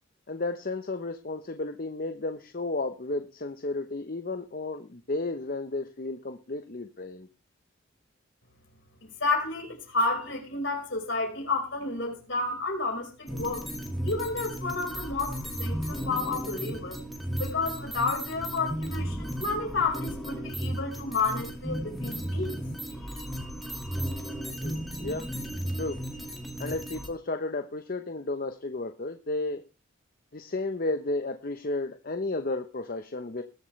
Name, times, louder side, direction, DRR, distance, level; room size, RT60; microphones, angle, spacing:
voice 1, 0.3-7.3 24.6-25.3 25.8-26.0 26.6-29.6 30.3-33.4, left 2 dB, 45° left, 0.8 m, -33 dB
voice 2, 9.0-13.7 14.0-17.0 17.4-22.6 23.0-23.1, left 3 dB, 65° left, 4.6 m, -31 dB
sound 1, 13.3-27.1, equal, ahead, 1.9 m, -34 dB
20.5 x 7.4 x 3.2 m
head